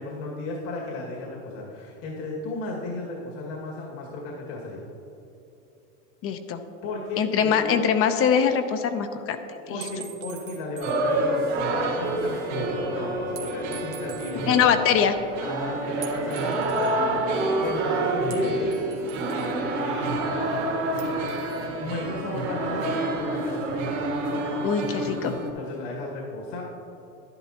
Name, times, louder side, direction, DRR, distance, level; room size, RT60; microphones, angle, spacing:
voice 1, 0.0-4.8 6.8-7.8 9.7-14.8 15.4-18.8 19.3-23.8 24.6-24.9 25.5-26.6, left 2 dB, 65° left, -2 dB, 2.1 m, -35 dB
voice 2, 6.2-6.6 7.2-9.4 14.5-15.1 24.6-25.3, left 7 dB, 35° left, 8 dB, 0.7 m, -22 dB
sound 1, 9.8-11.1 11.4-11.5 13.4-14.4 16.0-17.0 18.3-19.6 21.0-21.7, right 10 dB, 90° right, 1.2 m, -43 dB
sound 2, 10.8-25.5, right 2 dB, 70° right, 2.4 m, -28 dB
11.5 x 10.5 x 2.9 m, 2.9 s
hypercardioid pair, 110°, 38 cm